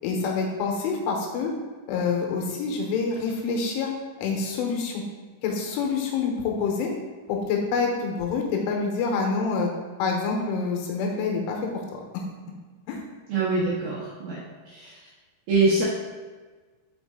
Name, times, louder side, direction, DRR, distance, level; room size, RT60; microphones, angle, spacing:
voice 1, 0.0-1.5 1.9-3.9 4.2-5.0 5.4-6.9 7.3-9.7 10.0-12.0 12.9-13.0, left 4 dB, 85° left, 1 dB, 3.3 m, -27 dB
voice 2, 13.3-14.4 14.7-14.9 15.5-15.8, right 3 dB, 75° right, -7 dB, 2.3 m, -24 dB
5.9 x 5.4 x 3.6 m, 1.4 s
omnidirectional pair, 5.7 m